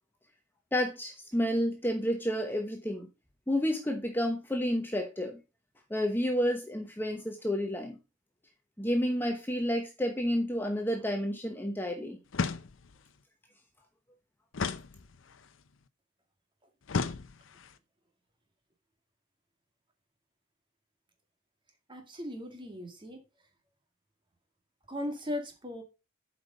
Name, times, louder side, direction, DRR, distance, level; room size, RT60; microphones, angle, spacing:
voice 1, 0.7-3.1 3.5-5.4 5.9-7.9 8.8-12.2, equal, 10° left, 3 dB, 1.0 m, -30 dB
sound 1, 12.3-13.1 14.5-15.5 16.9-17.7, left 4 dB, 80° left, 0.6 m, -34 dB
voice 2, 21.9-23.2 24.9-25.8, left 1 dB, 25° right, 4 dB, 1.9 m, -37 dB
8.0 x 5.2 x 4.9 m, 0.28 s
head